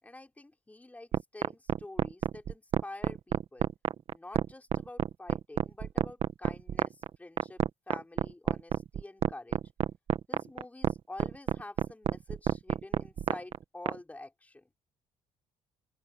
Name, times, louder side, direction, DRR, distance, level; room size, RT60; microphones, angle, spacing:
voice 1, 0.0-3.7 4.1-9.6 10.3-14.7, left 2 dB, 10° left, 4.4 m, -48 dB
sound 1, 1.1-14.0, right 9 dB, 55° right, 1.5 m, -28 dB
open air
cardioid pair, 95°, 12 cm